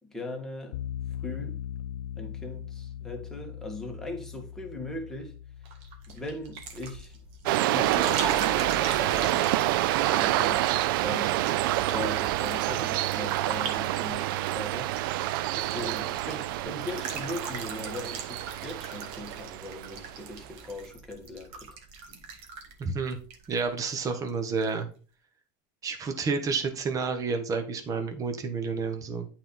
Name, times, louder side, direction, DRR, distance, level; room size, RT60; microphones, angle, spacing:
voice 1, 0.0-0.8 1.2-1.6 2.1-5.3 6.1-7.2 7.6-9.5 10.0-11.5 11.8-14.9 15.5-21.8, left 1 dB, 5° left, 1.7 m, -39 dB
sound 1, 0.7-9.6, left 10 dB, 85° left, 0.5 m, -41 dB
sound 2, 5.7-24.0 24.3-24.7, right 4 dB, 60° right, 1.7 m, -41 dB
sound 3, 7.5-20.3, right 15 dB, 80° right, 0.4 m, -28 dB
voice 2, 22.8-23.2 23.5-24.9 25.8-29.3, right 4 dB, 30° right, 1.2 m, -30 dB
8.9 x 4.4 x 4.0 m
supercardioid pair, 125°, 11 cm